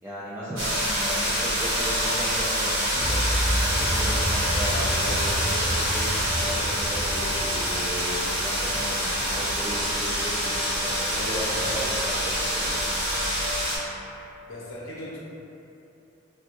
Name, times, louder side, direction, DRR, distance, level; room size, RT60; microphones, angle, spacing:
voice 1, 0.0-12.8, equal, 10° right, -10 dB, 0.3 m, -36 dB
sound 1, 0.6-13.8, equal, 85° right, 1.1 m, -26 dB
sound 2, 2.9-9.0, equal, 25° left, 0.7 m, -30 dB
sound 3, 3.7-13.5, equal, 65° right, 0.5 m, -37 dB
voice 2, 11.2-11.9 14.5-15.2, equal, 80° left, -7 dB, 0.7 m, -36 dB
3.4 x 2.2 x 2.8 m, 3.0 s
head